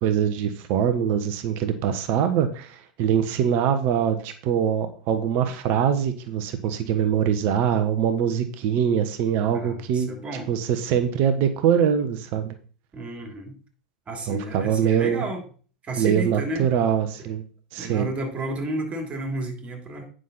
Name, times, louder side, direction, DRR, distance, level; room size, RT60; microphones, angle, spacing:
voice 1, 0.0-10.1 10.5-12.5 14.3-15.2 16.0-17.4 17.7-18.1, right 8 dB, 50° right, 9 dB, 1.2 m, -23 dB
voice 2, 9.5-10.5 12.9-13.5 14.1-15.4 15.8-16.6 17.8-20.1, right 2 dB, 30° right, 4 dB, 3.1 m, -31 dB
9.5 x 6.3 x 4.1 m, 0.41 s
figure-of-eight pair, 85°, 4 cm